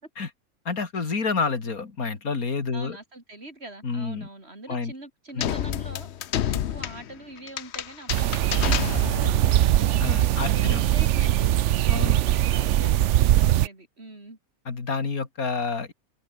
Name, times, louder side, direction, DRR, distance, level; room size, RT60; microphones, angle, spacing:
voice 1, 0.6-3.0 3.8-4.3 4.7-4.9 5.3-5.6 10.0-10.8 11.9-12.2 14.7-15.9, left 4 dB, 80° left, 3.0 m, -29 dB
voice 2, 2.7-6.1 6.4-12.2 12.5-14.4, right 2 dB, 45° right, 4.8 m, -43 dB
sound 1, 5.4-9.5, left 10 dB, 55° left, 0.9 m, -30 dB
sound 2, 8.1-13.7, right 12 dB, 65° right, 0.8 m, -21 dB
omnidirectional pair, 1.5 m